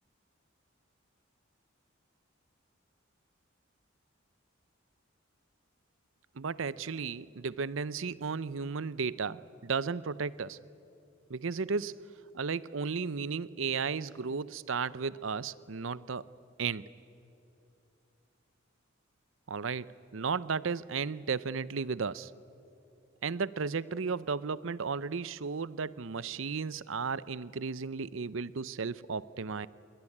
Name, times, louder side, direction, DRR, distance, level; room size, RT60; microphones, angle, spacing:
voice 1, 6.4-10.6 11.3-12.1 12.3-16.2 16.6-16.9 19.5-22.3 23.2-29.7, right 5 dB, 70° right, 18 dB, 0.7 m, -34 dB
27.0 x 22.0 x 9.9 m, 2.7 s
head